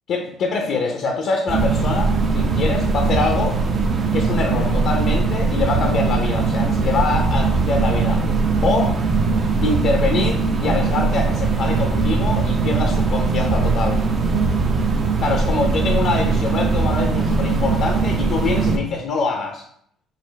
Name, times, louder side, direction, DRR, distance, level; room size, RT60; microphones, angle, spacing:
voice 1, 0.1-3.6 4.1-8.2 8.6-9.0 9.6-14.0 15.2-19.6, left 4 dB, 60° left, 1 dB, 0.6 m, -24 dB
sound 1, 1.5-18.8, right 4 dB, 40° right, 0.6 m, -20 dB
4.0 x 2.4 x 4.0 m, 0.66 s
cardioid pair, 95°, 0 cm